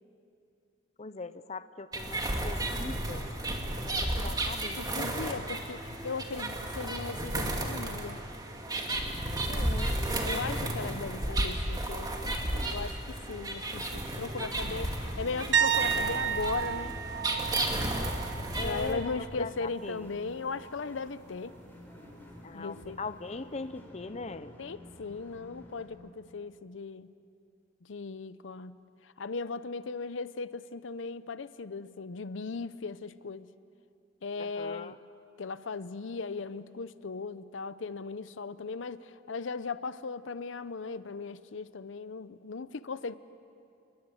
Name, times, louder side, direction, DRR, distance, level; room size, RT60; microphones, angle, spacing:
voice 1, 1.0-3.3 3.8-5.0 9.5-10.7 18.6-20.1 22.4-24.5 34.4-34.9, left 3 dB, 35° left, 12 dB, 0.7 m, -41 dB
sound 1, 1.9-18.9, right 1 dB, 20° right, 2.3 m, -33 dB
voice 2, 4.7-8.2 10.2-12.1 12.5-17.0 18.6-21.5 22.5-23.0 24.6-27.1 27.8-28.8 29.0-33.5 34.2-35.0 35.4-43.1, left 4 dB, 90° left, 15 dB, 0.7 m, -38 dB
sound 2, 13.6-25.9, left 1 dB, 10° left, 4.5 m, -52 dB
sound 3, 15.5-19.3 19.6-19.9 22.8-22.9, right 8 dB, 70° right, 0.9 m, -31 dB
29.0 x 21.0 x 7.8 m, 2.5 s
head